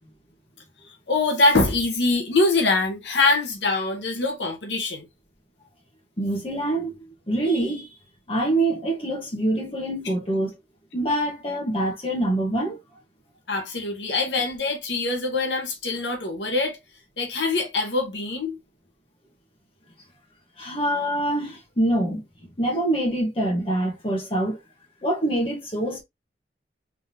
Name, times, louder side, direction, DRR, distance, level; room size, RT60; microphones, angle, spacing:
voice 1, 1.1-5.1 13.5-16.8 17.2-18.6, left 3 dB, 80° left, 1.3 m, -23 dB
voice 2, 6.2-7.0 7.3-7.9 8.3-10.5 10.9-12.8 20.6-22.2 22.6-24.6 25.0-26.0, right 1 dB, 30° left, 1.6 m, -25 dB
3.7 x 3.7 x 2.8 m
head